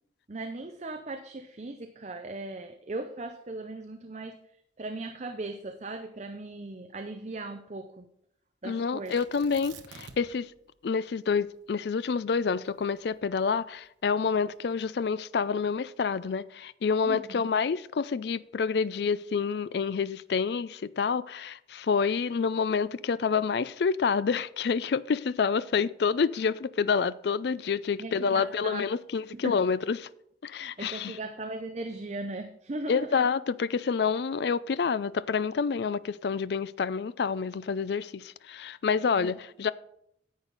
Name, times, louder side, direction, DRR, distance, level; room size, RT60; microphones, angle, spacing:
voice 1, 0.3-4.4 4.8-8.1 8.6-9.3 17.0-17.4 28.0-28.9 29.3-29.6 30.6-33.2 39.1-39.3, right 2 dB, 40° right, 0.6 m, -38 dB
voice 2, 8.6-10.5 10.8-30.1 30.4-31.2 32.9-39.7, left 5 dB, 60° left, 0.4 m, -28 dB
Tearing, 9.1-10.5 10.7-10.8 11.4-13.8 14.5-14.9, right 6 dB, 80° right, 1.1 m, -49 dB
10.5 x 8.2 x 4.0 m
head